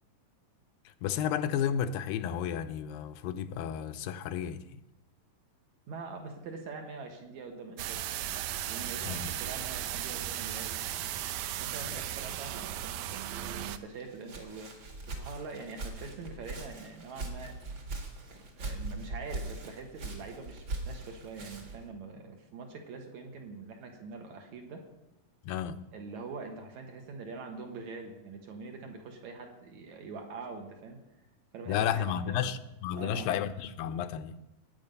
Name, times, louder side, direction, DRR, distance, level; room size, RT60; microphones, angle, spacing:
voice 1, 1.0-4.6 9.0-9.3 25.5-25.8 31.7-34.4, left 9 dB, 80° left, 2.3 m, -32 dB
voice 2, 5.9-8.0 8.7-10.7 11.6-17.6 18.5-24.8 25.9-31.0 31.5-32.5 32.9-33.3, right 4 dB, 60° right, 2.5 m, -44 dB
sound 1, 7.8-13.8, right 12 dB, 80° right, 1.7 m, -36 dB
Walk footsteps, 13.9-21.9, right 2 dB, 40° right, 2.2 m, -41 dB
16.5 x 9.6 x 5.4 m
omnidirectional pair, 4.2 m